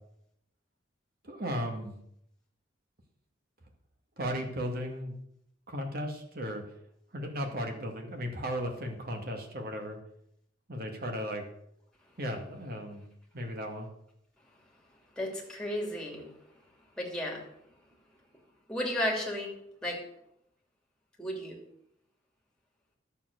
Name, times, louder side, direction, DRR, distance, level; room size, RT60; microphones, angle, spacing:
voice 1, 1.2-2.0 4.2-5.2 5.7-6.6 7.1-10.0 10.7-11.5 12.2-13.0 13.3-13.9, equal, 55° right, 3 dB, 2.2 m, -35 dB
voice 2, 15.2-16.3 17.0-17.4 18.7-19.5 19.8-20.0 21.2-21.6, left 1 dB, 5° left, -1 dB, 2.9 m, -33 dB
11.5 x 7.2 x 6.6 m, 0.74 s
head